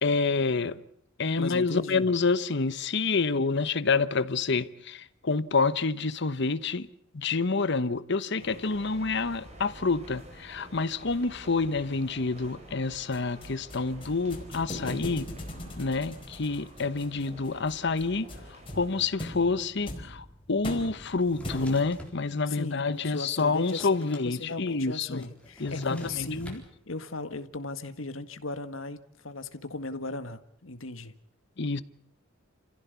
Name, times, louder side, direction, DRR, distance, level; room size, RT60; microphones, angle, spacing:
voice 1, 0.0-0.8 1.2-6.9 7.1-15.3 15.8-18.3 18.7-25.2 25.6-26.3 31.6-31.8, left 4 dB, 60° left, 1.0 m, -28 dB
voice 2, 1.4-2.1 22.5-31.1, left 3 dB, 75° left, 1.7 m, -37 dB
sound 1, 8.4-19.0, right 1 dB, 35° right, 5.7 m, -49 dB
sound 2, 13.1-22.0, left 1 dB, 25° left, 4.7 m, -41 dB
Drawer open or close, 21.2-22.2 22.8-24.3 24.5-24.6 24.9-26.6, equal, 5° left, 3.9 m, -45 dB
29.0 x 15.5 x 8.3 m
head